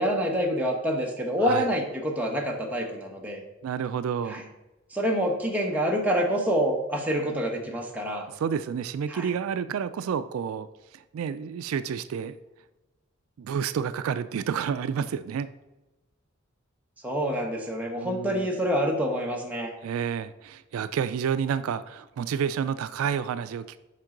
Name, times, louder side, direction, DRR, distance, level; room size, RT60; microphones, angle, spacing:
voice 1, 0.0-3.4 4.3-4.4 4.9-8.3 9.1-9.3 17.0-19.7, equal, 5° right, 0 dB, 1.0 m, -27 dB
voice 2, 3.6-4.4 8.3-10.7 10.9-12.4 13.4-15.5 17.9-18.5 19.8-23.8, right 7 dB, 75° right, 13 dB, 0.3 m, -30 dB
7.5 x 5.2 x 3.8 m, 1.1 s
head